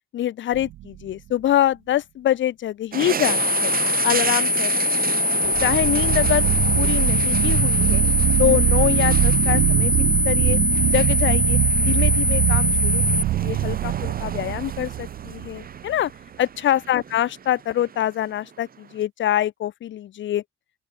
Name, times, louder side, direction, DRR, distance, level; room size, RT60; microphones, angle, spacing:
voice 1, 0.1-3.7 4.0-4.9 5.3-6.4 6.7-8.0 8.4-9.9 10.2-10.6 10.9-11.6 11.8-16.1 16.4-20.4, left 12 dB, 70° left, 1.6 m, -25 dB
sound 1, 0.5-1.1 5.4-15.6, right 14 dB, 75° right, 0.8 m, -22 dB
sound 2, 2.9-19.0, right 7 dB, 50° right, 2.6 m, -34 dB
sound 3, 3.2-13.2, left 2 dB, 15° left, 2.4 m, -22 dB
open air
cardioid pair, 90°, 20 cm